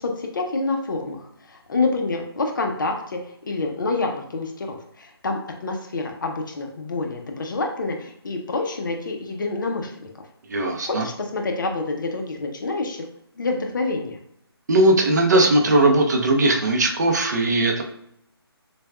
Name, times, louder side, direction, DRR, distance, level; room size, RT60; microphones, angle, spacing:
voice 1, 0.0-10.1 10.8-13.1 13.4-14.2, left 3 dB, 50° left, 3 dB, 0.7 m, -27 dB
voice 2, 10.5-11.1 14.7-17.8, right 2 dB, 45° right, 2 dB, 0.6 m, -18 dB
6.7 x 2.3 x 2.3 m, 0.72 s
figure-of-eight pair, 160°, 13 cm